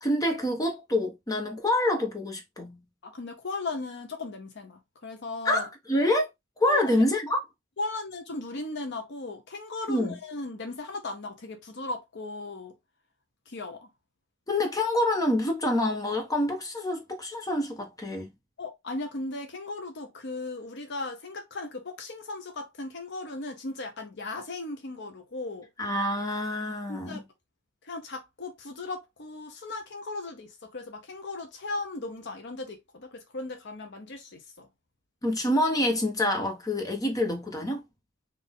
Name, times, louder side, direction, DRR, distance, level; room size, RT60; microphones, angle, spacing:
voice 1, 0.0-2.8 5.4-6.3 6.6-7.4 9.9-10.2 14.5-18.3 25.8-27.2 35.2-37.8, left 1 dB, 20° left, 1.2 m, -26 dB
voice 2, 3.0-5.7 6.6-7.0 7.8-12.7 13.5-13.9 18.6-25.7 26.9-27.2 27.8-34.7, left 3 dB, 60° left, 0.8 m, -37 dB
4.1 x 2.6 x 3.6 m
head